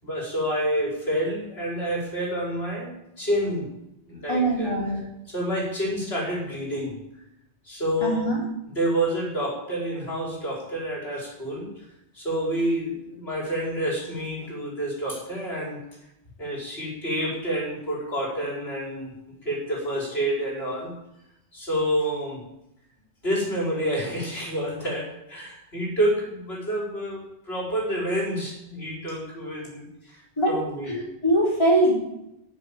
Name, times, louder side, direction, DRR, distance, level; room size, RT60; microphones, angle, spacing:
voice 1, 0.0-3.7 4.1-4.7 5.3-7.0 7.6-8.3 8.7-11.7 12.1-15.8 16.4-19.1 19.4-20.9 21.5-22.4 23.2-30.9, right 1 dB, 65° left, -4 dB, 5.5 m, -28 dB
voice 2, 4.3-5.0 8.0-8.4 30.4-30.5 30.9-31.9, right 1 dB, 25° left, -5 dB, 4.1 m, -22 dB
13.5 x 7.6 x 8.9 m, 0.84 s
omnidirectional pair, 1.2 m